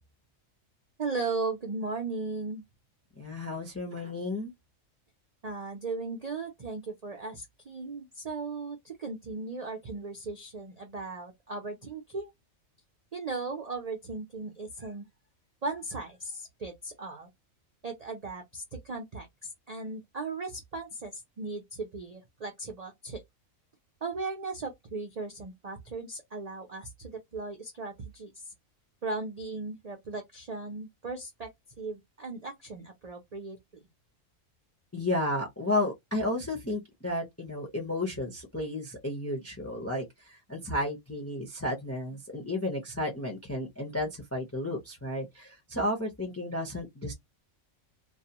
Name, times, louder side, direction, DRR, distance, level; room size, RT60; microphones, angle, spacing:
voice 1, 1.0-2.6 5.4-12.3 13.1-15.1 15.6-17.3 17.8-23.2 24.0-28.5 29.0-31.5 31.8-33.8, right 3 dB, 55° right, 0.4 m, -37 dB
voice 2, 3.2-4.5 34.9-47.1, left 1 dB, 20° left, 0.4 m, -32 dB
2.4 x 2.2 x 2.8 m
omnidirectional pair, 1.4 m